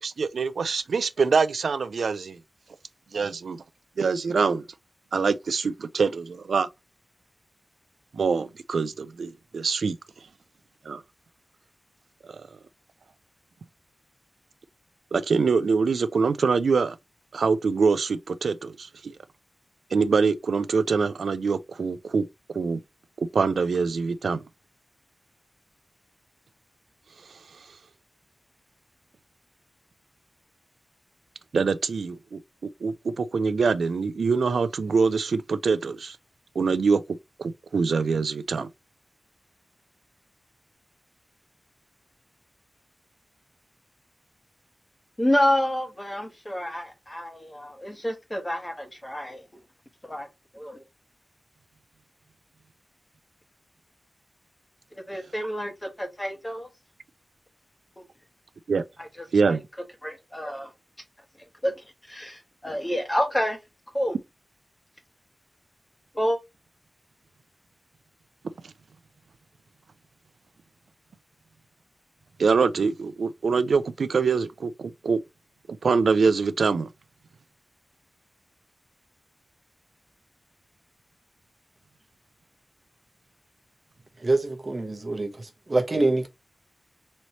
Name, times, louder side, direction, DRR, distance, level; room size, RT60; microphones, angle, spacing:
voice 1, 0.0-2.4 3.1-3.6 4.0-4.6 5.1-6.7 8.1-10.0 10.9-11.0 12.3-12.5 15.1-17.0 17.3-19.2 19.9-22.2 22.5-22.8 23.2-24.4 27.3-27.6 31.5-32.4 32.8-36.2 36.6-37.0 37.4-38.7 58.7-58.8 59.3-59.6 68.6-68.7 72.4-75.2 75.8-76.9, right 5 dB, 85° right, 0.3 m, -24 dB
voice 2, 45.2-49.4 50.0-50.3 50.5-50.8 54.9-56.7 59.0-59.1 59.4-59.6 60.0-60.7 61.6-63.6 63.9-64.2 66.1-66.4, left 1 dB, 15° left, 1.1 m, -28 dB
voice 3, 84.2-86.3, right 2 dB, 40° right, 1.0 m, -25 dB
4.1 x 3.1 x 2.9 m
wide cardioid pair, 90°, 0 cm